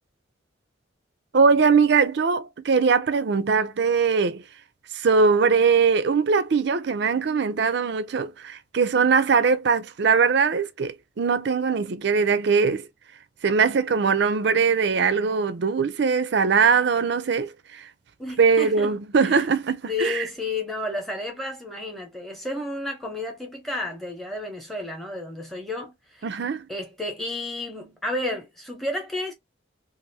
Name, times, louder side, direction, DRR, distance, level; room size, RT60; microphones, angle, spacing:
voice 1, 1.3-4.4 4.9-12.9 13.4-17.9 18.4-20.2 26.2-26.7, right 5 dB, 55° right, 0.4 m, -21 dB
voice 2, 18.2-19.4 19.9-26.3 26.7-29.3, left 2 dB, ahead, 0.8 m, -32 dB
2.7 x 2.5 x 2.7 m
head